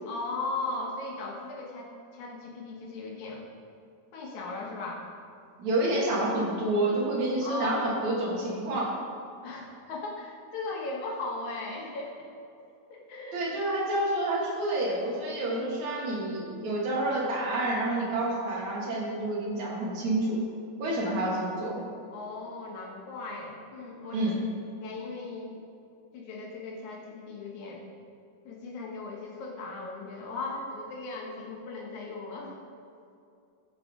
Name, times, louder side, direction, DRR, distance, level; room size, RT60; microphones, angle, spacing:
voice 1, 0.1-3.5 4.1-5.1 7.4-7.9 9.4-12.3 12.9-13.4 22.1-24.3 24.8-25.6 26.1-27.8 28.4-32.6, left 3 dB, 65° left, -1 dB, 2.7 m, -37 dB
voice 2, 5.6-8.9 13.3-20.4 20.8-21.8 24.1-24.4, right 1 dB, 60° right, -4 dB, 3.0 m, -28 dB
15.0 x 5.9 x 5.0 m, 2.6 s
omnidirectional pair, 4.0 m